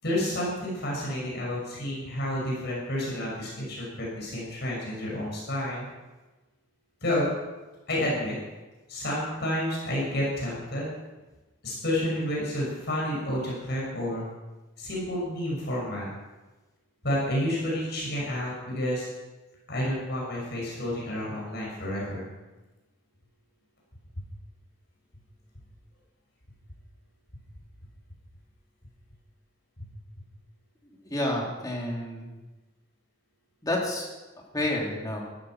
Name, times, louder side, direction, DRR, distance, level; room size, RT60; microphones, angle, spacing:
voice 1, 0.0-5.9 7.0-7.3 7.9-8.4 8.9-10.9 11.6-14.3 14.8-16.1 17.0-19.1 19.7-22.3 29.8-29.9, left 1 dB, 55° left, -5 dB, 6.2 m, -30 dB
voice 2, 31.0-32.4 33.6-34.1 34.5-35.2, left 1 dB, 20° left, -2 dB, 2.8 m, -29 dB
14.0 x 13.5 x 6.0 m, 1.2 s
head